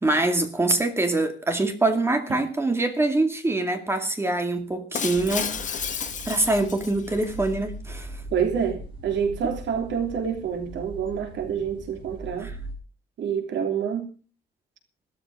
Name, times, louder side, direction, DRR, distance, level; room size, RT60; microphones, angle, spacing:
voice 1, 0.0-8.1 12.4-12.5, right 2 dB, 15° right, 2.3 m, -24 dB
Shatter, 4.9-7.3, left 7 dB, 45° left, 1.8 m, -32 dB
sound 1, 5.1-12.7, right 1 dB, 30° right, 5.7 m, -40 dB
voice 2, 8.3-12.5 13.2-14.1, right 7 dB, 80° right, 3.3 m, -27 dB
15.5 x 13.0 x 5.0 m
cardioid pair, 165°, 18 cm